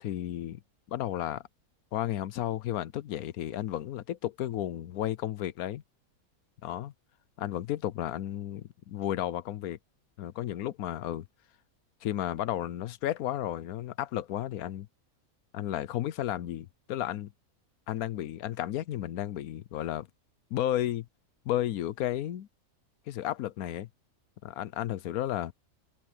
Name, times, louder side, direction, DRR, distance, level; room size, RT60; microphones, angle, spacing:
voice 1, 0.0-0.6 0.9-1.4 1.9-5.8 6.6-6.9 7.4-9.8 10.2-11.3 12.0-14.9 15.5-17.3 17.9-20.1 20.5-21.1 21.5-22.5 23.1-23.9 24.4-25.5, left 12 dB, 80° left, 1.2 m, -33 dB
omnidirectional pair, 1.5 m